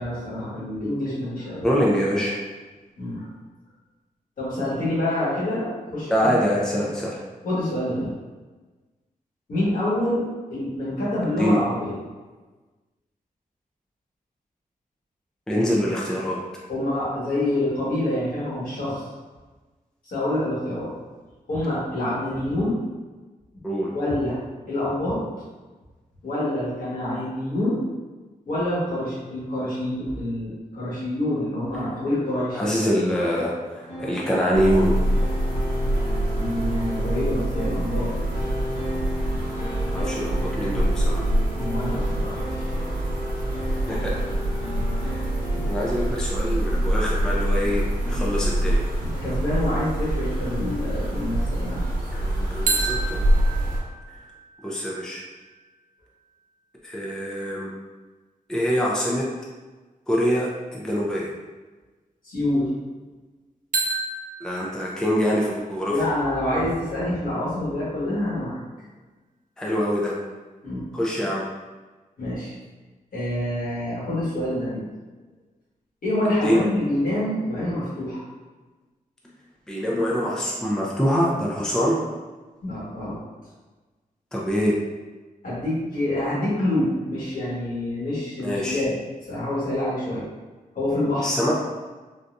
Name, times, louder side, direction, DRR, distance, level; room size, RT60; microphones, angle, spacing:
voice 1, 0.0-1.7 3.0-3.3 4.4-6.4 7.4-8.1 9.5-12.0 16.7-19.0 20.1-20.9 21.5-22.8 23.9-24.4 24.7-25.2 26.2-27.8 28.5-32.7 36.4-38.1 41.5-42.7 44.8-44.9 45.5-45.6 49.0-51.8 62.2-62.7 65.9-68.6 70.6-70.9 72.2-72.5 73.1-74.9 76.0-78.2 82.6-83.2 85.4-88.9 89.3-90.3 90.7-91.3, left 1 dB, 70° left, -8 dB, 1.5 m, -26 dB
voice 2, 1.6-2.4 6.1-7.2 11.4-11.6 15.5-16.4 23.6-23.9 32.5-34.9 39.9-41.3 43.9-44.2 44.9-45.3 45.6-48.8 52.1-53.3 54.6-55.2 56.8-57.7 58.5-59.2 60.1-61.3 64.4-65.9 69.6-70.1 70.9-71.4 76.4-76.6 79.7-82.0 84.3-84.8 88.4-88.8 91.2-91.5, equal, 5° left, -4 dB, 0.4 m, -24 dB
sound 1, 33.6-46.0, equal, 50° left, 0.9 m, -34 dB
sound 2, 34.5-53.8, right 1 dB, 85° right, 0.8 m, -25 dB
sound 3, 52.7-56.5 63.7-67.6, right 3 dB, 60° right, 0.6 m, -33 dB
3.9 x 2.3 x 2.5 m, 1.3 s
wide cardioid pair, 140°, 15 cm